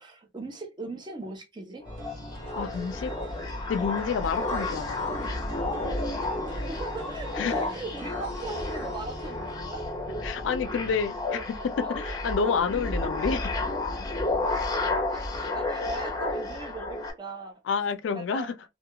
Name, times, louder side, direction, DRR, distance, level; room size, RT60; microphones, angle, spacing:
voice 1, 0.0-2.1 4.5-4.7 6.7-9.8 11.5-12.2 14.4-17.6 18.1-18.5, right 2 dB, 25° right, 0.5 m, -40 dB
sound 1, 1.8-17.1, left 2 dB, 20° left, 0.6 m, -31 dB
sound 2, 1.8-11.7, right 1 dB, 70° right, 0.9 m, -44 dB
voice 2, 2.6-3.1 3.7-5.1 7.4-7.5 10.2-13.5 17.7-18.5, left 5 dB, 80° left, 0.3 m, -29 dB
2.3 x 2.2 x 2.7 m
head